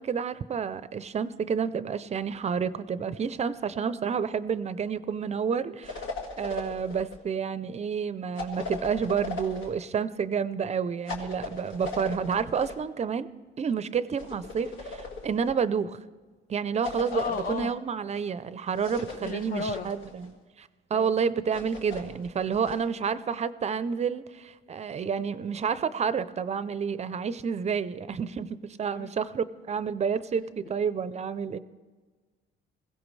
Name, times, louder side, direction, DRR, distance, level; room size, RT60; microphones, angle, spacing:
voice 1, 0.0-6.0 6.4-13.3 13.6-16.0 16.5-31.6, right 6 dB, 35° right, 14 dB, 0.5 m, -30 dB
sound 1, 5.8-7.2 8.4-9.8 11.1-12.8 14.2-15.5 16.8-17.7 18.8-20.3 21.5-22.9, left 3 dB, 80° left, 1.9 m, -38 dB
voice 2, 17.1-17.7 18.7-18.8 19.2-19.9 20.9-21.1 28.9-29.1, left 4 dB, 45° left, 7 dB, 0.7 m, -34 dB
21.0 x 16.0 x 3.2 m, 1.4 s
cardioid pair, 120°, 20 cm